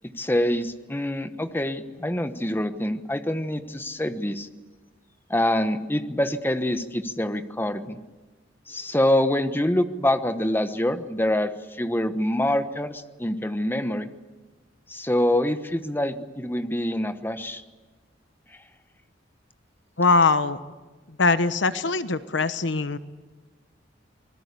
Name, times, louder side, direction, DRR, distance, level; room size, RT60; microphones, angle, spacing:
voice 1, 0.1-4.5 5.3-8.0 8.7-14.1 14.9-17.6, left 1 dB, 10° left, 9 dB, 1.1 m, -25 dB
voice 2, 20.0-20.6 21.2-23.0, left 3 dB, 70° left, 12 dB, 1.0 m, -21 dB
26.0 x 21.5 x 8.4 m, 1.2 s
head